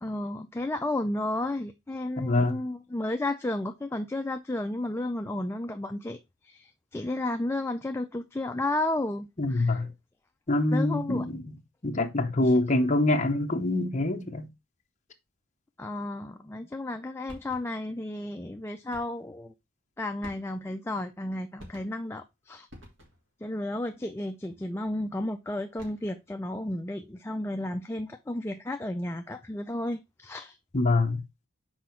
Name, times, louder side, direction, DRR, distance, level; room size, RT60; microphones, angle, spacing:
voice 1, 0.0-9.8 10.7-11.3 12.4-12.5 15.8-19.5 20.0-22.7 23.4-30.6, left 1 dB, 10° left, 0.3 m, -33 dB
voice 2, 2.2-2.6 9.4-9.9 10.5-11.6 11.8-14.5 30.7-31.2, left 2 dB, 35° left, 0.7 m, -25 dB
sound 1, 17.3-17.9 18.9-19.3 20.2-20.8 21.6-22.2 22.7-23.4 25.6-26.2, equal, 55° right, 2.6 m, -50 dB
6.2 x 4.6 x 4.4 m
head